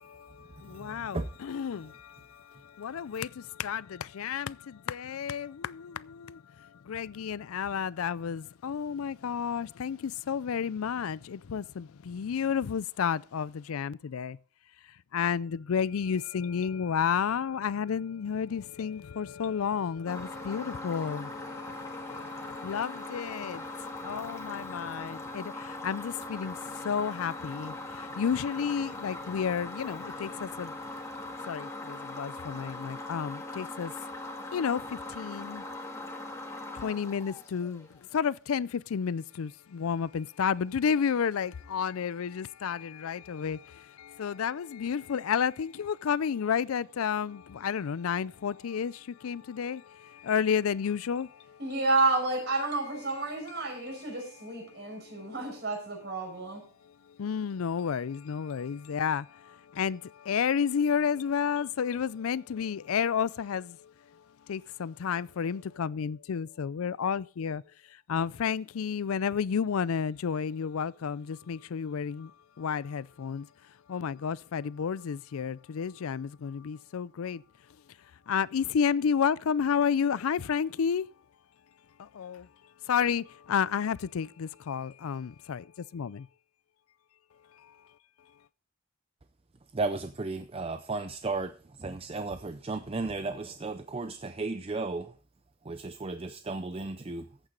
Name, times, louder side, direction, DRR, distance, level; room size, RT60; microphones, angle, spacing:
voice 1, 0.0-14.4 15.1-30.8 31.5-33.9 34.5-35.6 36.7-51.6 53.9-54.0 54.7-55.4 57.1-63.9 64.5-67.6 68.1-73.5 73.9-77.4 78.3-81.1 82.0-82.5 82.8-86.3, left 7 dB, 85° left, 0.4 m, -31 dB
voice 2, 0.6-1.3 23.7-23.9 89.7-95.1 95.6-97.3, right 3 dB, 30° right, 0.5 m, -35 dB
sound 1, 20.1-38.0, left 2 dB, 15° left, 1.8 m, -40 dB
voice 3, 51.6-56.6, right 3 dB, 50° right, 5.5 m, -30 dB
14.0 x 8.9 x 3.8 m
head